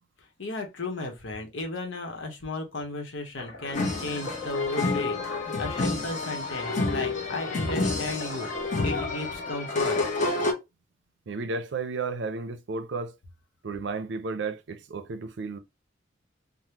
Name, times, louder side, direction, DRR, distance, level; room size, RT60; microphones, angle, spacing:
voice 1, 0.4-10.0, left 2 dB, 90° left, 0.9 m, -35 dB
sound 1, 3.3-9.0, left 2 dB, 60° left, 1.2 m, -41 dB
sound 2, 3.7-10.5, left 3 dB, 40° left, 0.8 m, -29 dB
voice 2, 11.3-13.1 13.6-15.6, right 4 dB, 65° right, 0.5 m, -33 dB
3.6 x 2.1 x 2.8 m
head